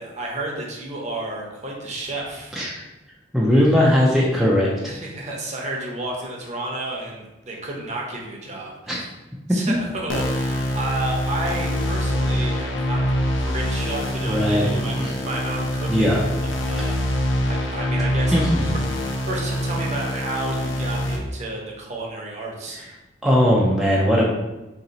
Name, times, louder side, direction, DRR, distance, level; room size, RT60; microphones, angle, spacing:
voice 1, 0.0-2.6 4.9-9.1 9.5-13.0 13.4-18.5 19.3-22.8, right 2 dB, 35° right, -1 dB, 0.7 m, -31 dB
voice 2, 3.3-4.9 8.9-9.0 14.2-15.1 15.9-16.2 16.8-16.9 18.3-18.7 22.7-22.9 23.2-24.5, equal, ahead, -5 dB, 0.4 m, -19 dB
sound 1, 10.1-21.2, equal, 75° left, 0.6 m, -24 dB
2.9 x 2.8 x 4.0 m, 1.0 s
head